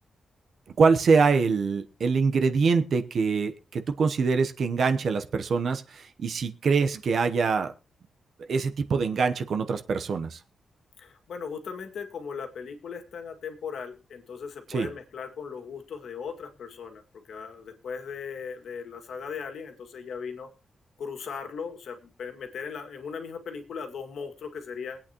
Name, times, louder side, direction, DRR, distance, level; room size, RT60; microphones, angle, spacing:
voice 1, 0.8-7.7 8.4-10.4 14.7-14.9, right 5 dB, 55° right, 7 dB, 0.9 m, -24 dB
voice 2, 11.0-17.0 17.3-20.5 21.0-25.0, left 6 dB, 70° left, 5 dB, 2.1 m, -38 dB
22.0 x 8.7 x 3.0 m, 0.31 s
wide cardioid pair, 160°, 0 cm